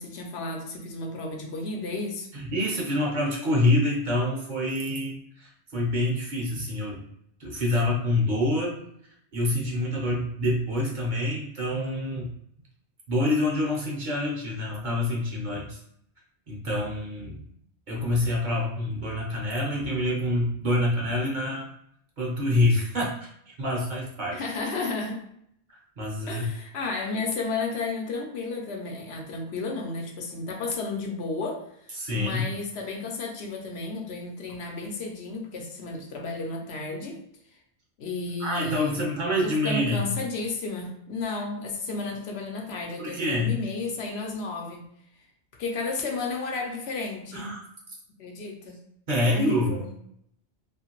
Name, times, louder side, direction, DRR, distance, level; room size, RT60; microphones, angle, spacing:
voice 1, 0.0-2.3 24.3-25.2 26.3-37.2 38.0-39.0 39.4-44.8 45.6-47.4 48.2-48.8 49.2-49.9, left 3 dB, 75° left, 2 dB, 0.8 m, -33 dB
voice 2, 2.3-7.0 7.4-8.8 9.3-12.3 13.1-15.8 16.5-17.4 17.9-21.7 22.2-24.4 25.7-26.5 31.9-32.5 38.4-40.1 43.0-43.5 47.3-47.6 49.1-49.9, left 1 dB, 50° right, -3 dB, 0.8 m, -26 dB
2.7 x 2.5 x 2.8 m, 0.71 s
omnidirectional pair, 1.1 m